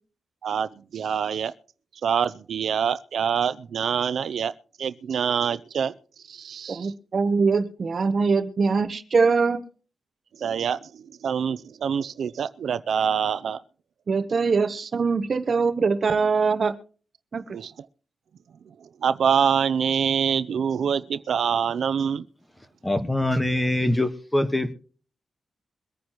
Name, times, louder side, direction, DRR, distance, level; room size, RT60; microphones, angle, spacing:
voice 1, 0.4-1.5 2.0-4.5 4.8-5.9 6.3-6.9 10.4-13.6 17.5-17.9 18.8-22.2, right 7 dB, 80° right, 0.5 m, -25 dB
voice 2, 6.7-9.6 14.1-16.7 17.3-17.4, right 4 dB, 50° right, 0.9 m, -22 dB
voice 3, 22.8-24.7, left 1 dB, 10° left, 1.3 m, -23 dB
23.0 x 9.4 x 3.0 m
wide cardioid pair, 115°, 0 cm